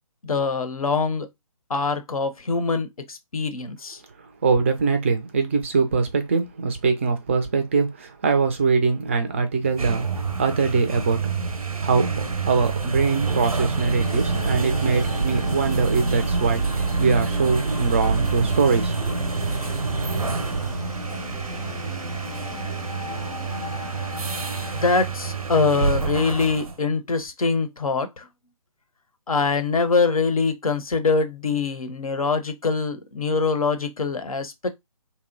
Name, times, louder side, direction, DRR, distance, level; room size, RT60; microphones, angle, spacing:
voice 1, 0.2-1.3 1.7-4.0 24.7-28.2 29.3-34.7, left 4 dB, 75° left, 0.6 m, -24 dB
voice 2, 4.4-10.1 10.4-11.2 11.8-16.6 17.0-18.9, right 4 dB, 20° right, 0.3 m, -22 dB
sound 1, 9.6-26.8, right 4 dB, 90° right, 0.6 m, -27 dB
sound 2, 14.0-24.9, left 5 dB, 35° left, 0.5 m, -39 dB
2.7 x 2.0 x 2.5 m
figure-of-eight pair, 140°, 18 cm